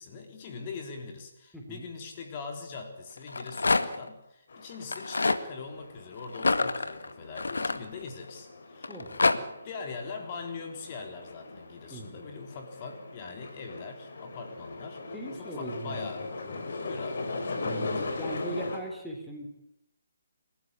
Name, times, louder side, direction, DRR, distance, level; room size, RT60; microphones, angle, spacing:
voice 1, 0.0-16.3 16.8-17.3, left 4 dB, 35° left, 4 dB, 3.6 m, -42 dB
voice 2, 1.5-1.9 8.9-9.1 11.9-12.2 15.1-16.1 16.4-16.6 17.6-19.5, right 1 dB, ahead, -1 dB, 3.6 m, -39 dB
Rattle, 3.2-4.1 4.8-5.4 6.3-8.3 8.8-9.4, left 3 dB, 75° left, 1.8 m, -27 dB
sound 1, 4.5-18.8, left 3 dB, 60° left, 4.8 m, -39 dB
28.5 x 14.0 x 9.7 m, 0.84 s
figure-of-eight pair, 150°, 0 cm